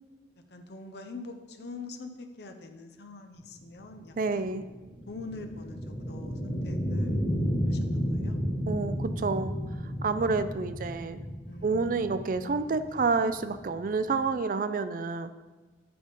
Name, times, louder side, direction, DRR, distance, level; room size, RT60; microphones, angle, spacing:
voice 1, 0.5-4.8 5.1-7.2 7.7-8.4 11.5-12.6 12.9-13.2, left 3 dB, 60° left, 5 dB, 0.7 m, -45 dB
sound 1, 3.6-14.3, equal, 15° left, 1.5 m, -33 dB
voice 2, 4.2-4.6 8.7-9.6 10.0-11.2 11.6-15.3, right 4 dB, 45° right, 11 dB, 0.3 m, -29 dB
8.5 x 3.9 x 5.2 m, 1.2 s
head